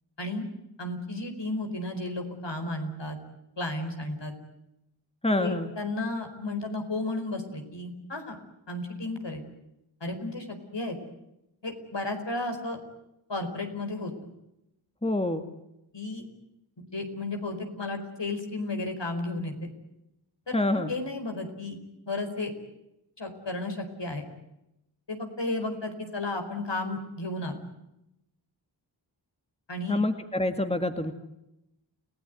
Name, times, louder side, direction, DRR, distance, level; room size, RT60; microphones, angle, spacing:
voice 1, 0.8-3.2 3.6-4.3 5.4-8.4 8.7-9.4 10.0-11.0 11.6-12.8 13.3-14.1 15.9-16.3 16.8-19.7 20.5-21.8 22.1-22.5 23.2-24.2 25.1-27.6 29.7-30.0, left 2 dB, 65° left, 5 dB, 4.8 m, -33 dB
voice 2, 5.2-5.7 15.0-15.4 20.5-20.9 29.9-31.1, left 1 dB, 15° left, 7 dB, 2.0 m, -26 dB
29.5 x 17.5 x 9.5 m, 0.88 s
wide cardioid pair, 50°, 45 cm